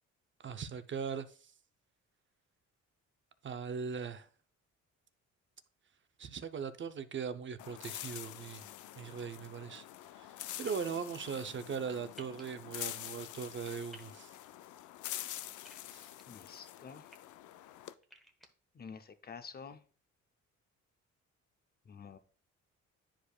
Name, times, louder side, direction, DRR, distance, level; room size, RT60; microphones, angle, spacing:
voice 1, 0.4-1.5 3.4-4.3 6.2-8.6 9.0-9.8 10.2-10.3 10.6-14.3 15.9-16.1, right 6 dB, 40° right, 0.6 m, -40 dB
sound 1, 7.6-17.9, left 13 dB, 75° left, 0.5 m, -46 dB
sound 2, 10.7-10.8 12.2-12.4 13.9-14.1 15.6-16.2 16.9-17.2 18.0-18.5, equal, ahead, 1.0 m, -54 dB
voice 2, 16.3-17.1 18.7-19.8 21.9-22.2, left 6 dB, 30° left, 0.7 m, -49 dB
10.0 x 4.9 x 2.3 m
cardioid pair, 90°, 30 cm